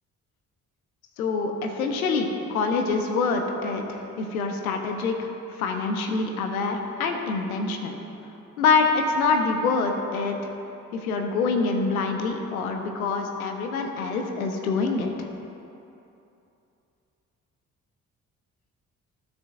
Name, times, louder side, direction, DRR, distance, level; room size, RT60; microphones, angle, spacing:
voice 1, 1.2-8.0 8.6-10.5 10.9-15.3, left 4 dB, 85° left, 4 dB, 0.9 m, -26 dB
16.0 x 6.2 x 2.4 m, 2.8 s
figure-of-eight pair, 40°, 42 cm